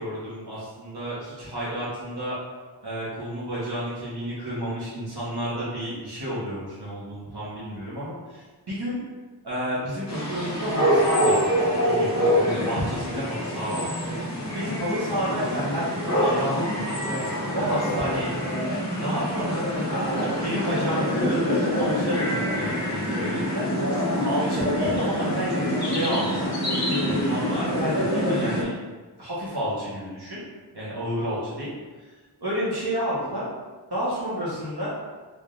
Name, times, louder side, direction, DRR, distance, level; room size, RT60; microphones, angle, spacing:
voice 1, 0.0-2.4 2.8-9.0 9.4-13.9 14.5-17.1 17.5-18.3 19.0-20.0 20.4-23.7 24.2-26.5 27.1-28.8 29.2-30.4 30.7-31.7 32.0-32.1 32.4-33.4 33.9-34.9, equal, 65° right, -9 dB, 1.3 m, -30 dB
sound 1, 10.1-28.6, equal, 40° left, 1.2 m, -25 dB
3.5 x 3.4 x 2.6 m, 1.3 s
wide cardioid pair, 60°, 41 cm